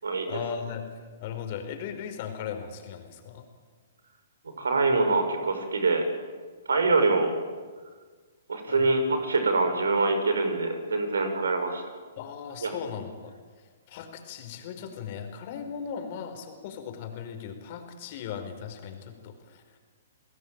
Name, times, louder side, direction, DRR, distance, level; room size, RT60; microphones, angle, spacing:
voice 1, 0.3-3.5 7.0-7.2 8.7-8.8 12.2-19.8, left 7 dB, 45° left, 6 dB, 4.9 m, -38 dB
voice 2, 4.6-6.1 6.7-7.3 8.5-11.8 12.6-12.7, right 3 dB, 75° right, 7 dB, 5.8 m, -24 dB
29.0 x 20.0 x 9.0 m, 1.5 s
figure-of-eight pair, 120°, 0 cm